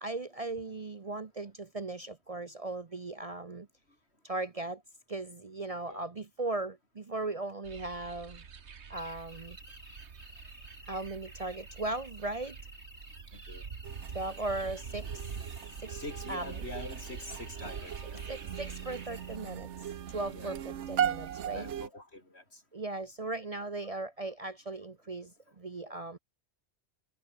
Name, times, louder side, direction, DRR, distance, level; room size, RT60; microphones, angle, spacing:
voice 1, 0.0-3.7 4.2-4.8 5.1-8.4 8.9-9.6 10.8-12.6 14.1-15.3 15.8-16.0 16.3-16.6 18.3-19.7 20.1-21.7 22.7-26.2, right 2 dB, 35° right, 0.9 m, -38 dB
sound 1, 7.6-19.1, right 6 dB, 75° right, 1.7 m, -46 dB
sound 2, 8.9-19.4, left 2 dB, 45° left, 4.3 m, -54 dB
voice 2, 13.3-13.7 15.9-18.2 20.3-20.5 21.5-22.6 25.9-26.0, left 2 dB, 65° left, 6.0 m, -45 dB
sound 3, 13.8-21.9, right 9 dB, 90° right, 1.2 m, -38 dB
omnidirectional pair, 1.2 m